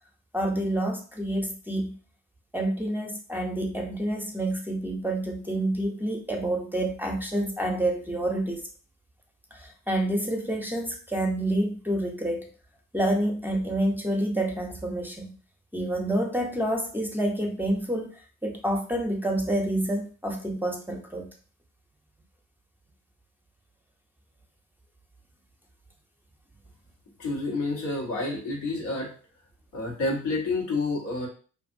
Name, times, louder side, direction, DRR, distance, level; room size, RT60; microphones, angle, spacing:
voice 1, 0.3-1.9 2.5-8.6 9.5-12.5 12.9-15.3 15.7-18.1 18.4-21.3, right 1 dB, 5° right, 1 dB, 0.7 m, -28 dB
voice 2, 27.2-29.1 29.7-31.3, left 2 dB, 80° left, -3 dB, 1.2 m, -29 dB
2.6 x 2.4 x 2.6 m, 0.39 s
hypercardioid pair, 50°, 36 cm